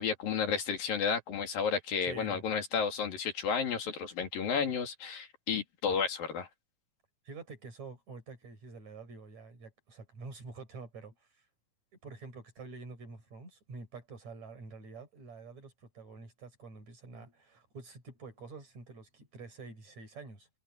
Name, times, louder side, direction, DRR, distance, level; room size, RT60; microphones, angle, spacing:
voice 1, 0.0-6.5, left 6 dB, 85° left, 4.8 m, -32 dB
voice 2, 2.0-2.4 7.2-11.4 12.0-20.5, right 4 dB, 55° right, 6.8 m, -48 dB
omnidirectional pair, 3.9 m